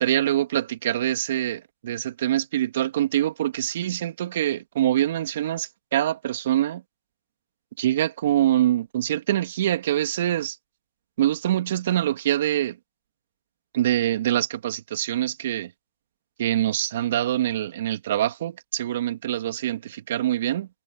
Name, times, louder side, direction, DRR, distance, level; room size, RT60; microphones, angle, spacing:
voice 1, 0.0-6.8 7.8-10.6 11.2-12.8 13.7-15.7 16.4-20.7, right 12 dB, 55° right, 2.5 m, -24 dB
hypercardioid pair, 140°, 0 cm